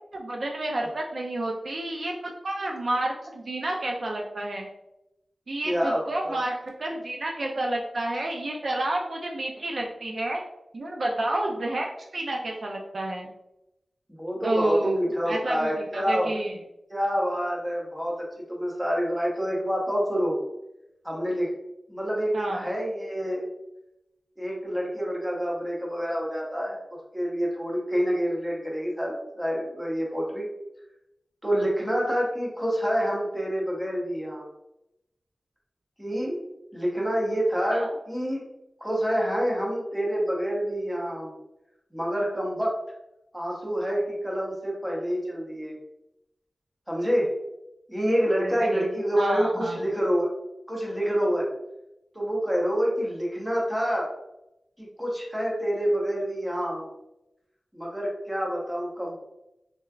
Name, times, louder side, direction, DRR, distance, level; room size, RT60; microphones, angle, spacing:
voice 1, 0.1-2.1 2.4-4.7 5.5-10.4 10.7-13.3 14.4-16.5 22.3-22.7 37.7-37.9 48.4-48.8 49.1-49.8, right 1 dB, 60° right, 0 dB, 0.4 m, -30 dB
voice 2, 5.6-6.4 14.2-16.3 16.9-20.4 21.0-21.5 21.9-23.4 24.4-30.5 31.4-34.5 36.0-38.4 38.8-41.3 41.9-42.8 43.3-45.8 46.9-47.3 47.9-50.3 50.7-51.5 52.1-54.1 54.8-56.9 57.7-59.2, equal, 5° right, -3 dB, 0.9 m, -27 dB
3.4 x 3.1 x 2.3 m, 0.87 s
wide cardioid pair, 105°, 0 cm